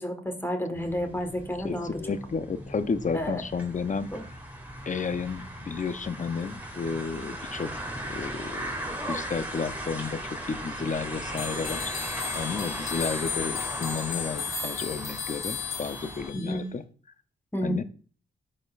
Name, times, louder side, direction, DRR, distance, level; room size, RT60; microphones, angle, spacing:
voice 1, 0.0-2.0 3.1-3.4 4.1-4.2 16.3-16.6 17.5-17.8, equal, 10° left, 5 dB, 1.5 m, -31 dB
sound 1, 0.7-16.3, equal, 10° right, 2.3 m, -38 dB
voice 2, 1.6-4.4 4.9-7.7 8.1-11.9 12.3-16.8 17.6-17.8, left 5 dB, 35° left, 11 dB, 0.6 m, -32 dB
sound 2, 11.4-16.6, left 7 dB, 90° left, 2.6 m, -34 dB
11.5 x 4.2 x 2.5 m, 0.40 s
cardioid pair, 80°, 21 cm